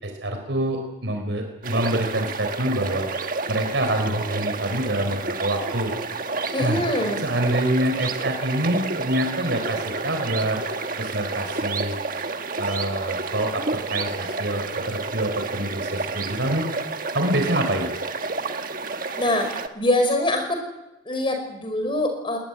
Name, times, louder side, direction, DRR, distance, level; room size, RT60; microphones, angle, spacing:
voice 1, 0.0-3.1 3.5-5.9 6.6-6.8 7.2-10.6 11.0-11.9 12.6-16.8 17.1-17.9, right 1 dB, 75° right, 4 dB, 4.0 m, -26 dB
sound 1, 1.6-19.7, right 3 dB, 45° right, 1.5 m, -30 dB
voice 2, 6.5-7.2 19.2-19.5 19.7-20.6 21.1-22.4, left 1 dB, 30° left, 5 dB, 5.6 m, -23 dB
21.0 x 19.5 x 9.7 m, 0.97 s
head